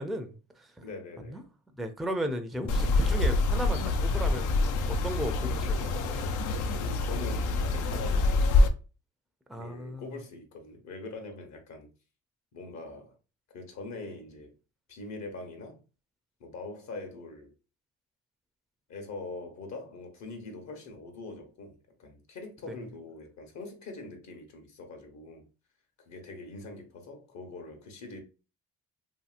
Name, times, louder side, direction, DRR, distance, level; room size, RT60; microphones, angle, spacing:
voice 1, 0.0-0.8 1.3-1.4 1.8-4.6 4.9-6.2 9.5-10.1 22.7-22.8, equal, ahead, 0.4 m, -35 dB
voice 2, 0.8-1.5 6.8-8.7 9.5-11.9 12.5-13.2 13.5-14.5 14.9-15.8 16.4-17.5 18.9-25.5 26.0-28.2, left 3 dB, 65° left, 1.0 m, -43 dB
sound 1, 2.7-8.7, left 2 dB, 80° left, 0.5 m, -26 dB
2.8 x 2.8 x 2.4 m
cardioid pair, 90°, 30 cm